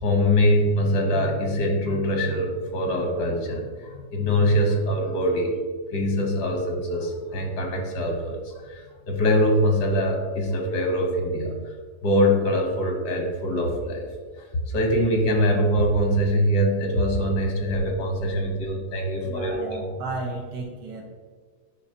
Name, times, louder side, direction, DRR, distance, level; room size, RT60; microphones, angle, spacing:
voice 1, 0.0-5.6 5.9-11.6 12.0-14.1 14.7-19.6, equal, 90° left, 3 dB, 1.7 m, -23 dB
voice 2, 19.2-21.0, right 2 dB, 80° right, -2 dB, 1.5 m, -33 dB
8.7 x 5.4 x 2.8 m, 1.5 s
omnidirectional pair, 1.7 m